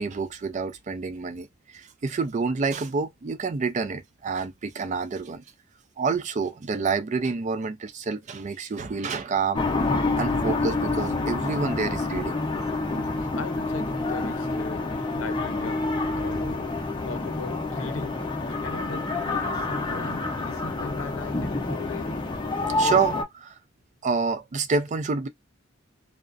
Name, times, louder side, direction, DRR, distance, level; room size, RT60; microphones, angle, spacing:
voice 1, 0.0-1.5 1.7-5.4 6.0-9.6 10.2-12.4 22.8-23.5 24.0-25.3, right 4 dB, 40° right, 0.4 m, -28 dB
sound 1, 9.5-23.2, left 2 dB, 25° left, 0.6 m, -28 dB
voice 2, 12.9-22.2, left 4 dB, 80° left, 0.6 m, -39 dB
sound 2, 17.0-22.9, left 1 dB, 15° right, 0.9 m, -44 dB
2.4 x 2.1 x 2.4 m
head